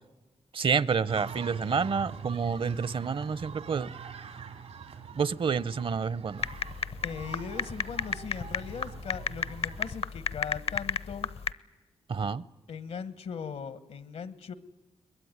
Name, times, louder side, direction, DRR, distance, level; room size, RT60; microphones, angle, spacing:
voice 1, 0.5-3.9 5.2-6.4 12.1-12.4, right 5 dB, 55° right, 0.8 m, -29 dB
sound 1, 1.1-10.0, right 6 dB, 85° right, 2.7 m, -44 dB
sound 2, 6.4-11.5, left 6 dB, 65° left, 0.7 m, -33 dB
voice 2, 7.0-11.3 12.7-14.5, left 6 dB, 85° left, 1.4 m, -39 dB
22.0 x 21.5 x 9.6 m
cardioid pair, 55°, 11 cm